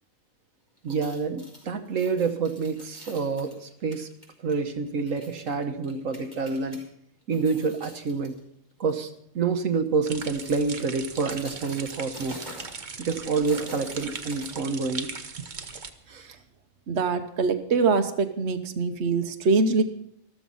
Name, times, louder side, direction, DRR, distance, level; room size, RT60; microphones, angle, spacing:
sound 1, 0.8-6.8 7.2-8.4 8.8-9.0 9.8-15.0 15.4-15.5, left 1 dB, 15° left, 5.0 m, -47 dB
voice 1, 0.8-4.1 4.4-6.8 7.3-8.3 8.8-9.1 9.3-12.4 13.0-15.1 16.1-16.4, right 4 dB, 75° right, 8 dB, 1.4 m, -28 dB
sound 2, 10.0-15.9, right 4 dB, 40° right, 1.1 m, -39 dB
voice 2, 16.9-19.8, right 4 dB, 55° right, 7 dB, 1.2 m, -23 dB
13.5 x 13.5 x 5.5 m, 0.71 s
omnidirectional pair, 1.4 m